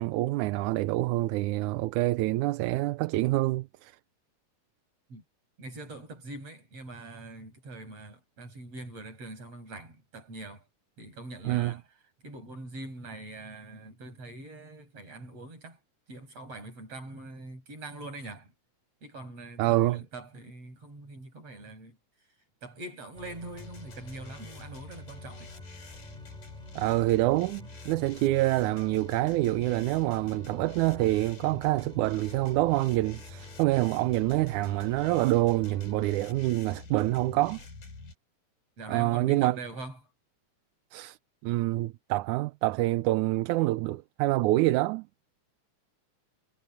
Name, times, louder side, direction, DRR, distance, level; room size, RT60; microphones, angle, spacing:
voice 1, 0.0-3.9 11.5-11.8 19.6-20.0 26.8-37.6 38.9-39.6 40.9-41.2 41.4-45.1, right 18 dB, 80° right, 2.0 m, -26 dB
voice 2, 5.6-10.7 11.0-11.8 12.2-15.8 16.1-18.5 19.0-22.0 22.6-25.5 38.8-40.0, right 2 dB, 50° right, 8.6 m, -43 dB
sound 1, 23.1-36.2, equal, ahead, 3.5 m, -53 dB
sound 2, 23.6-38.1, left 3 dB, 90° left, 7.6 m, -46 dB
omnidirectional pair, 3.6 m